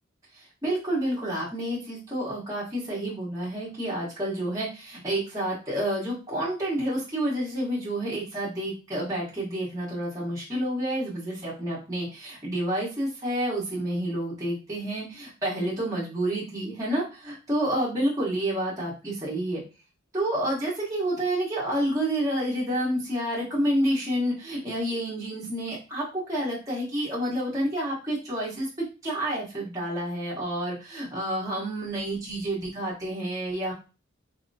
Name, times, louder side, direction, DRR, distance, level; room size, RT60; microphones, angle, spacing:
voice 1, 0.3-19.6 20.1-28.7 29.0-33.7, right 1 dB, 15° right, -6 dB, 1.2 m, -29 dB
4.3 x 2.8 x 2.6 m, 0.31 s
head